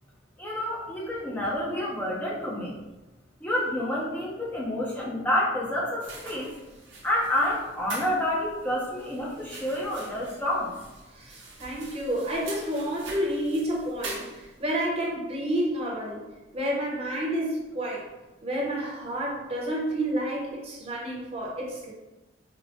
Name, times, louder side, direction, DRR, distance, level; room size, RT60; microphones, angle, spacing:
voice 1, 0.4-2.8 3.4-6.5 7.0-10.7, left 1 dB, 10° left, -5 dB, 0.4 m, -28 dB
sound 1, 6.0-14.8, right 2 dB, 80° right, 0.8 m, -44 dB
voice 2, 11.1-16.2 16.5-18.1 18.4-21.9, right 1 dB, 30° right, -3 dB, 0.7 m, -30 dB
4.7 x 2.1 x 2.5 m, 1.1 s
head